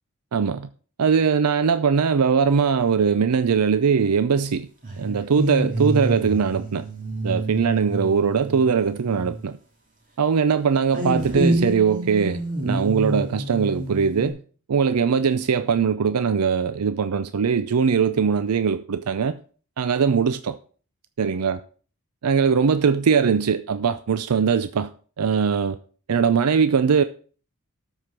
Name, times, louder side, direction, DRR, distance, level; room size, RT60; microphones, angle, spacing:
voice 1, 0.3-0.7 1.0-4.7 5.0-6.8 7.2-9.6 10.2-14.4 14.7-19.4 19.8-20.6 21.2-21.6 22.2-24.9 25.2-25.8 26.1-27.0, right 6 dB, 90° right, 0.5 m, -21 dB
sound 1, 4.8-9.4 10.9-14.3, right 1 dB, 35° right, 2.8 m, -28 dB
12.5 x 4.9 x 5.9 m
head